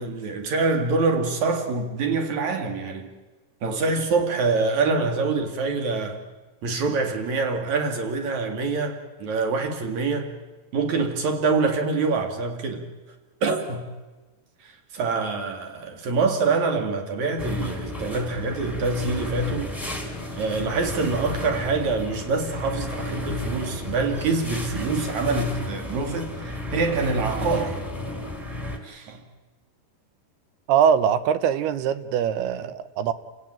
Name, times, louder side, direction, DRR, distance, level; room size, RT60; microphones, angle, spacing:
voice 1, 0.0-3.1 3.6-6.2 6.6-10.4 10.7-12.9 13.4-13.9 14.6-19.7 20.3-27.8 28.8-29.2, right 4 dB, 50° right, 3.3 m, -25 dB
sound 1, 17.4-28.8, left 1 dB, ahead, 2.5 m, -32 dB
voice 2, 30.7-33.1, right 8 dB, 80° right, 2.9 m, -22 dB
29.5 x 16.5 x 8.9 m
omnidirectional pair, 4.6 m